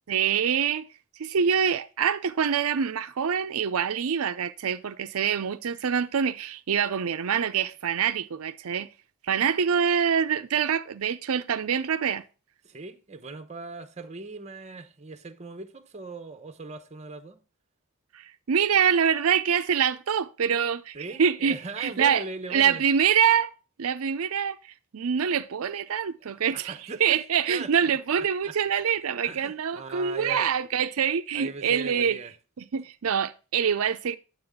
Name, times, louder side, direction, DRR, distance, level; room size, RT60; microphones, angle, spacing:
voice 1, 0.1-0.9 1.2-8.9 9.3-12.2 18.1-22.2 22.5-23.5 23.8-24.6 24.9-26.7 27.0-32.2 32.7-34.2, right 7 dB, 80° right, 0.5 m, -25 dB
voice 2, 12.6-17.4 20.9-22.8 26.2-28.0 28.4-28.6 29.2-30.5 31.3-32.3, right 3 dB, 30° right, 0.8 m, -39 dB
9.6 x 7.4 x 3.6 m
head